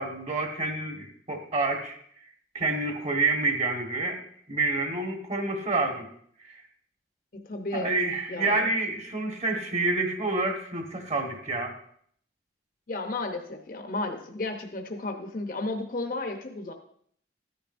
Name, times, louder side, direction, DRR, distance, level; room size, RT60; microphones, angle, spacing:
voice 1, 0.0-2.0 2.5-4.2 4.5-6.1 6.4-6.6 7.7-11.7, right 3 dB, 40° right, 3 dB, 1.5 m, -28 dB
voice 2, 7.3-7.9 8.3-8.7 12.9-16.7, left 2 dB, 50° left, 4 dB, 0.9 m, -33 dB
14.0 x 10.0 x 2.6 m, 0.63 s
head